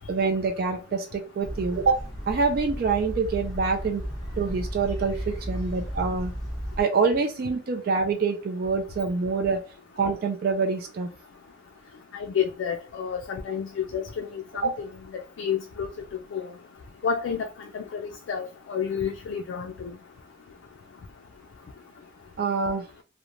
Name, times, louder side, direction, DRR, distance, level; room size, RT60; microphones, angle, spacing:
voice 1, 0.1-4.0 4.4-6.3 6.8-9.6 10.0-11.1 14.6-14.7 22.4-22.9, right 4 dB, 50° right, 0.3 m, -26 dB
sound 1, 1.4-6.8, equal, 20° left, 0.8 m, -34 dB
voice 2, 12.1-15.9 16.3-16.5 17.0-17.5 17.7-19.9, left 7 dB, 75° left, 0.3 m, -30 dB
3.0 x 2.0 x 2.5 m
head